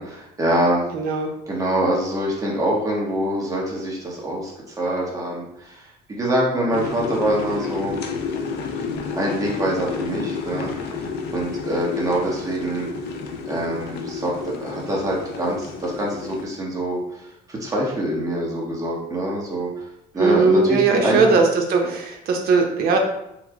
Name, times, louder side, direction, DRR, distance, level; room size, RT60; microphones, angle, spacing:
voice 1, 0.0-0.8 1.5-8.0 9.1-10.7 11.0-12.9 13.5-17.2 17.5-19.9 20.1-21.3, right 1 dB, 20° right, -3 dB, 1.0 m, -25 dB
voice 2, 0.9-1.3 20.2-23.0, right 4 dB, 65° right, 3 dB, 0.7 m, -19 dB
sound 1, 6.7-16.4, left 5 dB, 80° left, 0.5 m, -30 dB
3.1 x 2.1 x 3.6 m, 0.83 s
cardioid pair, 110°, 17 cm